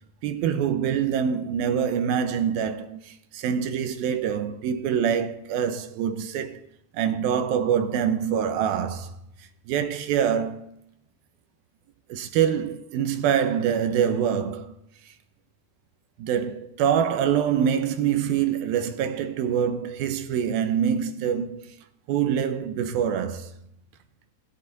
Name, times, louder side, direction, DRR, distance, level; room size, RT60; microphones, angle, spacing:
voice 1, 0.2-6.6 6.9-9.1 9.7-10.7 12.1-14.7 16.2-21.7 22.1-23.5, right 8 dB, 75° right, 2.5 m, -25 dB
16.5 x 13.5 x 4.1 m
omnidirectional pair, 4.7 m